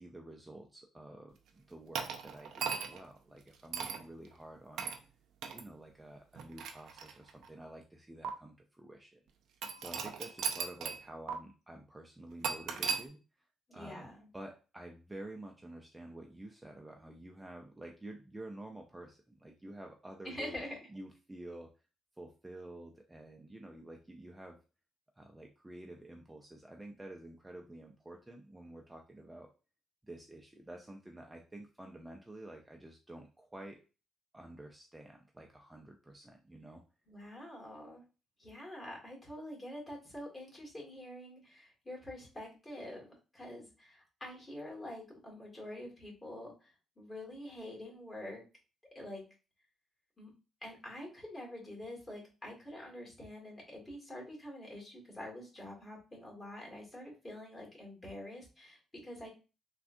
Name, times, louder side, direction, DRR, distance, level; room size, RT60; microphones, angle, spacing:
voice 1, 0.0-4.9 5.5-9.2 9.8-20.6 20.9-21.7 22.2-24.6 25.2-29.5 30.0-33.8 34.3-36.8, right 1 dB, 10° right, 2 dB, 0.4 m, -50 dB
sound 1, 1.9-3.1 3.7-4.0 4.8-5.0 5.4-5.6 6.3-7.5 8.2-8.3 9.6-11.0 11.3-11.4 12.4-13.0, right 6 dB, 80° right, 0.4 m, -37 dB
voice 2, 13.7-14.2 20.2-20.8 37.1-38.0 38.4-46.7 47.0-48.4 49.0-49.2 50.2-50.3 50.6-59.3, left 1 dB, 20° left, -1 dB, 1.7 m, -46 dB
3.5 x 2.3 x 2.5 m, 0.32 s
cardioid pair, 90°, 0 cm